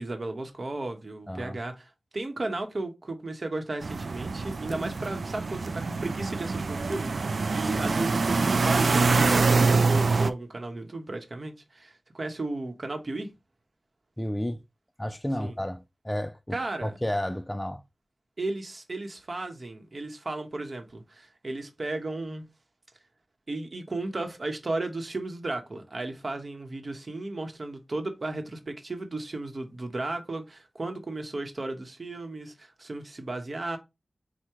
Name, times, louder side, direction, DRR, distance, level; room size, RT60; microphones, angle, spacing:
voice 1, 0.0-13.3 15.4-15.6 16.5-17.0 18.4-22.4 23.5-33.8, right 2 dB, 55° right, 0.9 m, -34 dB
voice 2, 1.3-1.6 7.6-8.0 14.2-14.6 15.0-16.4 16.8-17.8, equal, 10° left, 0.3 m, -32 dB
sound 1, 3.8-10.3, right 4 dB, 75° right, 0.4 m, -25 dB
4.7 x 2.2 x 4.4 m
wide cardioid pair, 60°, 0 cm